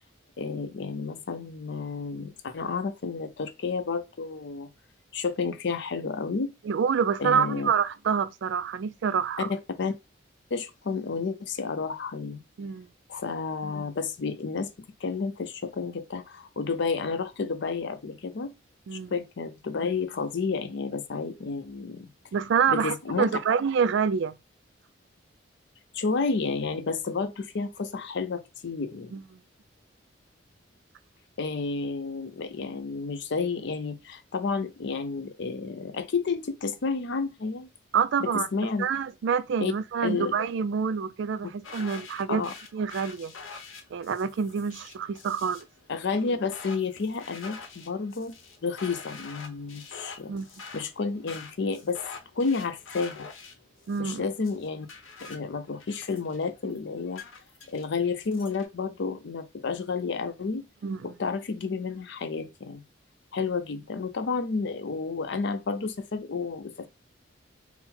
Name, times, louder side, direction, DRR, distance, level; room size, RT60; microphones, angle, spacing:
voice 1, 0.4-4.7 5.1-6.5 7.2-7.7 9.4-9.9 10.5-12.4 13.1-14.7 15.0-18.5 18.9-22.1 22.7-23.3 25.9-29.1 31.4-37.7 38.2-38.9 39.6-39.7 40.0-40.4 42.3-42.5 45.9-48.3 48.6-50.3 50.7-52.0 52.4-53.3 54.0-54.9 55.2-57.2 57.7-60.6 61.0-62.8 63.3-66.9, left 4 dB, 60° left, 0.5 m, -31 dB
voice 2, 6.6-9.5 12.6-12.9 18.9-19.1 22.3-24.4 29.1-29.2 37.9-38.5 38.8-42.5 42.7-43.3 43.9-45.7 50.3-50.5 53.9-54.2 60.8-61.1, right 6 dB, 65° right, 0.3 m, -27 dB
sound 1, 41.6-58.6, left 4 dB, 90° left, 0.9 m, -46 dB
3.8 x 2.0 x 4.3 m
head